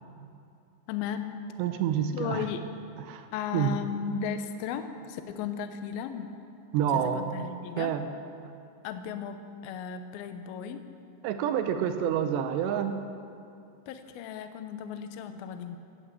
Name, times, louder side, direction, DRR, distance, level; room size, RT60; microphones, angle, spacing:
voice 1, 0.9-1.4 2.1-2.7 3.3-6.3 6.9-7.9 8.8-10.9 13.9-15.8, left 7 dB, 75° left, 8 dB, 2.3 m, -35 dB
voice 2, 1.6-2.5 3.1-3.3 3.5-3.7 6.7-7.2 7.8-8.1 11.2-13.0, right 9 dB, 80° right, 8 dB, 2.9 m, -28 dB
15.5 x 11.0 x 7.6 m, 2.5 s
omnidirectional pair, 5.1 m